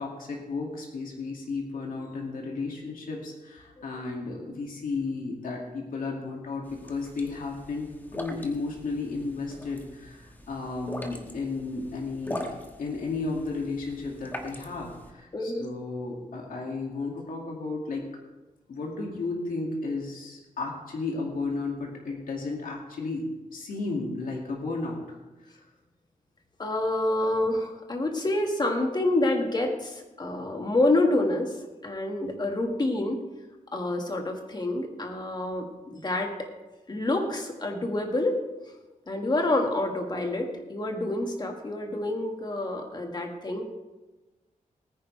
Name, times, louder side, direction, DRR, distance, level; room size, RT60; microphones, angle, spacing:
voice 1, 0.0-7.9 8.1-12.5 12.8-18.0 18.7-23.3 23.5-25.0, left 3 dB, 80° left, -1 dB, 2.3 m, -33 dB
sound 1, 6.6-15.1, left 1 dB, 15° left, 1.5 m, -42 dB
voice 2, 15.3-15.7 26.6-31.5 31.8-33.2 33.7-36.5 36.9-38.4 39.1-43.6, left 2 dB, 30° left, 3 dB, 1.8 m, -27 dB
19.5 x 9.6 x 3.3 m, 1.1 s
wide cardioid pair, 140°, 14 cm